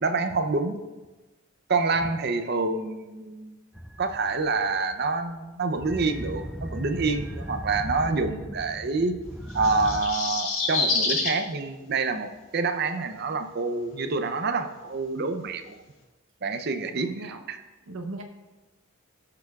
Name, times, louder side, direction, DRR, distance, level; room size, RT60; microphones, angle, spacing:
voice 1, 0.0-0.8 1.7-3.5 4.0-9.1 9.5-15.8 16.4-17.6, right 3 dB, 50° right, 9 dB, 0.6 m, -27 dB
sound 1, 3.8-5.3 5.8-10.0, equal, 5° right, 0.4 m, -37 dB
sound 2, 9.5-11.4 12.8-12.9, left 3 dB, 75° left, 1.6 m, -27 dB
voice 2, 16.9-17.4 17.9-18.2, right 2 dB, 85° right, 4 dB, 0.8 m, -38 dB
15.5 x 6.7 x 2.4 m, 1.2 s
head